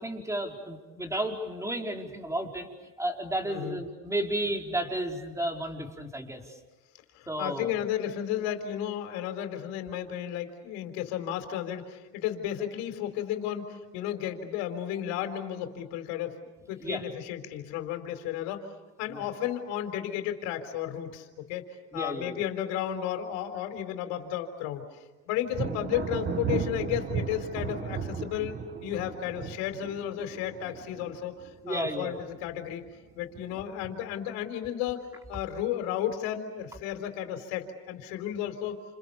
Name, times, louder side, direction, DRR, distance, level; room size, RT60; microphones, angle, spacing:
voice 1, 0.0-2.7 3.0-6.6 7.3-7.7 16.8-17.0 19.1-19.3 21.9-22.4 31.6-32.2, right 1 dB, 10° right, 2 dB, 4.7 m, -33 dB
voice 2, 3.4-3.8 7.1-16.4 16.7-18.7 19.0-21.6 21.9-24.8 25.3-31.3 31.7-32.8 33.1-35.0 35.3-38.8, left 11 dB, 85° left, 6 dB, 4.2 m, -33 dB
Thunder, 25.5-32.0 32.3-32.9 33.3-34.2, right 6 dB, 35° right, 2.0 m, -35 dB
30.0 x 28.5 x 7.0 m, 1.1 s
cardioid pair, 115°, 31 cm